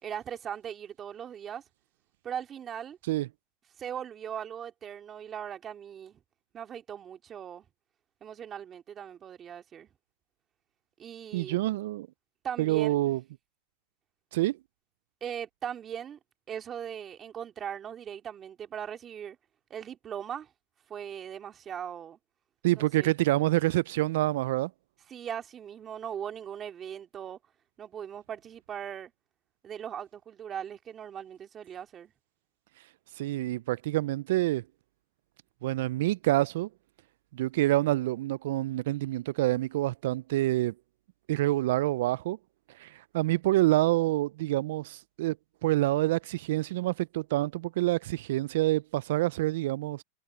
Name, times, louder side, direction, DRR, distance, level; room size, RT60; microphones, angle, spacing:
voice 1, 0.0-1.6 2.2-3.0 3.8-6.2 6.5-7.6 8.2-9.9 11.0-11.7 12.4-13.2 15.2-16.2 16.5-19.4 19.7-20.5 20.9-22.2 22.8-23.1 25.1-27.4 27.8-29.1 29.6-32.1, right 9 dB, 25° right, 2.7 m, -39 dB
voice 2, 11.3-12.1 12.6-13.2 14.3-14.6 22.6-24.7 33.2-34.6 35.6-36.7 37.3-40.7 41.3-42.4 42.7-45.4 45.6-50.0, right 17 dB, 70° right, 0.3 m, -27 dB
supercardioid pair, 130°, 0 cm